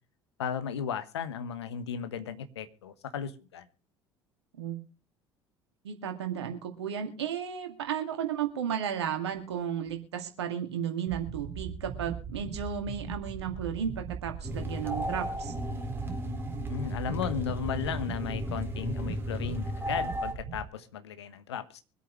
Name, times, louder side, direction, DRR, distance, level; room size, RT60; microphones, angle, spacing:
voice 1, 0.4-3.7 16.7-21.8, left 8 dB, 75° left, 11 dB, 1.2 m, -35 dB
voice 2, 5.8-15.5, right 8 dB, 75° right, 4 dB, 2.2 m, -34 dB
sound 1, 11.1-20.6, right 6 dB, 45° right, 2.2 m, -39 dB
sound 2, 14.4-20.3, left 1 dB, 15° right, 4.1 m, -35 dB
24.5 x 8.3 x 3.2 m, 0.34 s
figure-of-eight pair, 60°, 14 cm